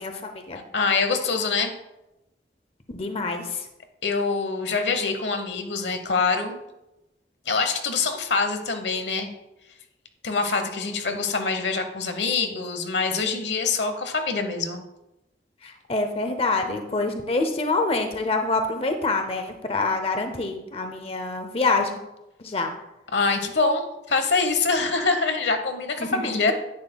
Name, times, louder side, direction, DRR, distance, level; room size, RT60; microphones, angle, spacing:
voice 1, 0.0-0.6 2.9-3.7 15.6-22.0 22.4-22.7 26.0-26.5, left 3 dB, 35° left, 6 dB, 0.7 m, -26 dB
voice 2, 0.7-1.7 4.0-6.6 7.5-9.3 10.2-14.8 23.1-26.5, left 4 dB, 85° left, 6 dB, 1.1 m, -25 dB
10.0 x 8.8 x 2.3 m, 0.94 s
head